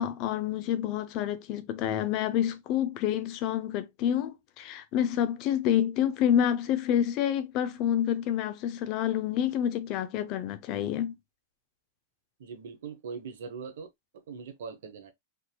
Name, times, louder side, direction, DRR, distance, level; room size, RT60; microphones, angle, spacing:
voice 1, 0.0-11.1, left 10 dB, 50° left, 0.6 m, -28 dB
voice 2, 12.4-13.9 14.3-15.1, right 5 dB, 75° right, 1.0 m, -41 dB
3.6 x 2.8 x 2.3 m
hypercardioid pair, 120°, 0 cm